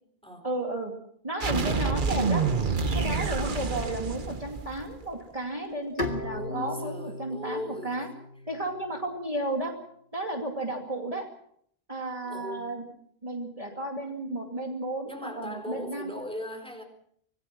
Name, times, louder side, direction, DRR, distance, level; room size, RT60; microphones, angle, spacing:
voice 1, 0.4-0.9 1.2-2.4 2.9-8.1 8.5-9.7 10.1-11.3 11.9-12.9 13.2-16.1, right 1 dB, 35° right, 1 dB, 2.7 m, -33 dB
sound 1, 1.4-5.1, right 4 dB, 55° right, 1.3 m, -28 dB
Bowed string instrument, 6.0-9.2, left 2 dB, 60° left, 2.5 m, -37 dB
voice 2, 6.3-7.9 12.2-12.7 14.1-14.2 15.1-16.8, left 1 dB, 5° left, 5 dB, 4.2 m, -39 dB
25.5 x 19.5 x 6.1 m, 0.67 s
omnidirectional pair, 1.0 m